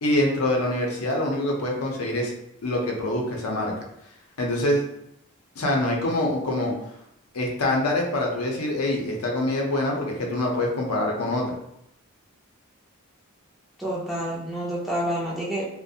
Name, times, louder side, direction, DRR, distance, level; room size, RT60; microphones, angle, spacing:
voice 1, 0.0-2.3 2.6-3.7 4.4-4.8 5.6-6.7 7.3-11.5, left 1 dB, 80° left, 0 dB, 0.6 m, -25 dB
voice 2, 13.8-15.7, right 1 dB, ahead, -6 dB, 0.4 m, -28 dB
2.4 x 2.1 x 2.7 m, 0.78 s
head